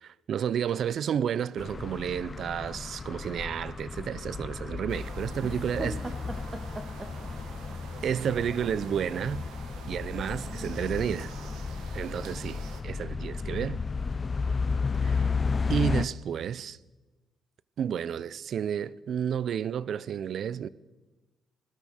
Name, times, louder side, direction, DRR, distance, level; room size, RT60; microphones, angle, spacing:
voice 1, 0.0-6.0 8.0-9.5 9.9-11.3 11.9-13.8 15.0-15.3 15.7-16.8 17.8-20.7, right 8 dB, 60° right, 0.5 m, -31 dB
sound 1, 1.6-16.0, left 4 dB, 35° left, 0.5 m, -33 dB
sound 2, 4.9-12.8, right 6 dB, 85° right, 1.6 m, -47 dB
voice 2, 5.4-7.1 10.3-10.7, right 1 dB, 25° right, 1.8 m, -40 dB
17.5 x 12.5 x 6.4 m
cardioid pair, 90°, 0 cm